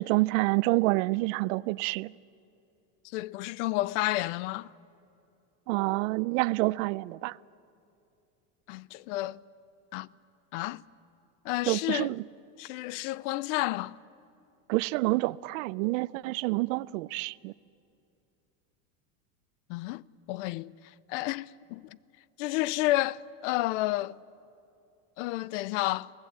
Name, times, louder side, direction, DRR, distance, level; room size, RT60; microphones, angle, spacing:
voice 1, 0.0-2.1 5.7-7.4 11.7-12.2 14.7-17.5, right 22 dB, 75° right, 0.5 m, -28 dB
voice 2, 3.1-4.7 8.7-9.4 9.9-10.1 10.5-10.8 11.4-12.1 12.6-14.0 19.7-20.7 21.1-22.0 22.4-24.2 25.2-26.1, left 17 dB, 65° left, 0.6 m, -31 dB
23.5 x 18.5 x 8.2 m
cardioid pair, 170°, 39 cm